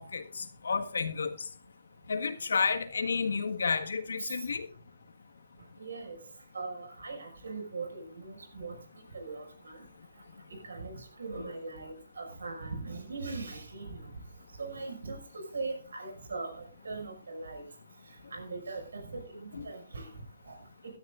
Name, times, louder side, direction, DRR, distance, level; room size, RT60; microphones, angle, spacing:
voice 1, 0.0-1.3 2.1-4.7 11.4-11.5 19.5-19.6, left 5 dB, 85° left, 1.6 m, -31 dB
voice 2, 5.8-6.2 6.5-8.8 9.1-9.8 10.6-14.1 14.6-17.6 18.3-20.1, right 3 dB, 90° right, 6.0 m, -40 dB
20.0 x 12.5 x 2.5 m
hypercardioid pair, 175°, 0 cm